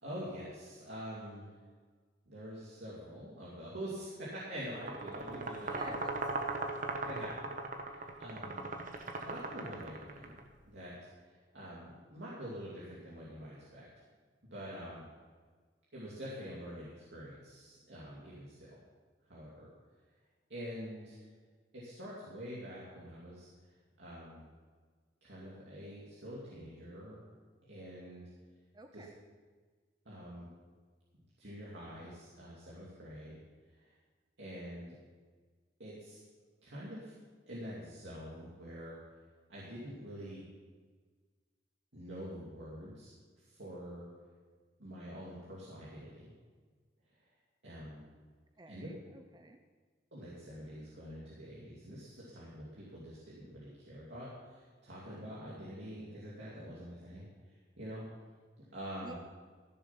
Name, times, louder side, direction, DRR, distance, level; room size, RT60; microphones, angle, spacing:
voice 1, 0.0-1.5 2.3-6.0 7.0-7.5 7.8-8.7 9.2-10.4 10.6-11.0 11.2-13.9 14.5-15.0 15.9-18.8 19.3-19.7 20.5-21.2 21.7-23.5 24.0-24.4 25.2-27.2 27.6-28.2 28.9-29.0 30.0-30.5 31.4-33.4 33.8-33.9 34.4-34.9 35.8-36.2 36.6-37.1 37.5-39.0 39.5-40.4 41.9-44.1 44.8-46.3 47.6-48.0 48.7-48.9 50.1-57.3 57.8-58.0 58.7-59.1, equal, 75° right, -7 dB, 2.7 m, -46 dB
sound 1, 4.7-10.4, right 3 dB, 45° right, 1.1 m, -39 dB
voice 2, 5.7-6.2 28.7-29.2 48.6-49.6 59.0-59.1, right 2 dB, 25° right, 6 dB, 0.5 m, -50 dB
14.5 x 7.0 x 5.9 m, 1.5 s
head